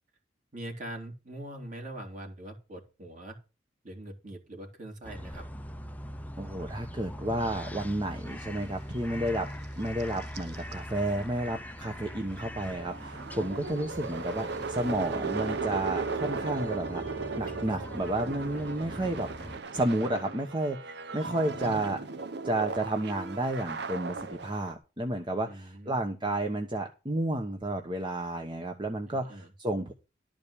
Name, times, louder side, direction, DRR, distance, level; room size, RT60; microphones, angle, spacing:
voice 1, 0.5-3.4 3.8-5.4 25.5-26.0 29.1-29.5, right 1 dB, 45° right, 1 dB, 2.9 m, -42 dB
sound 1, 5.0-19.6, equal, 10° left, 0.7 m, -42 dB
voice 2, 6.4-9.5 9.8-17.0 17.4-19.3 19.7-22.0 22.4-29.9, right 1 dB, 25° right, 4 dB, 1.0 m, -31 dB
sound 2, 9.6-9.7 10.0-10.7 11.2-11.3 11.5-24.7, right 4 dB, 65° right, 0.8 m, -37 dB
12.5 x 5.1 x 6.9 m, 0.31 s
head